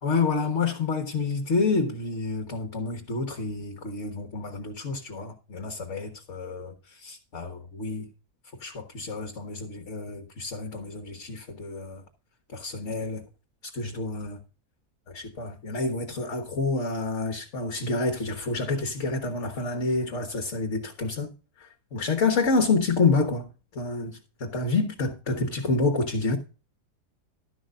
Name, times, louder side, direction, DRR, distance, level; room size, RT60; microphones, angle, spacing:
voice 1, 0.0-8.1 8.6-12.0 12.5-13.2 13.6-14.4 15.1-21.3 21.6-26.4, left 3 dB, 50° left, 1.6 m, -28 dB
12.5 x 11.0 x 2.5 m
omnidirectional pair, 1.7 m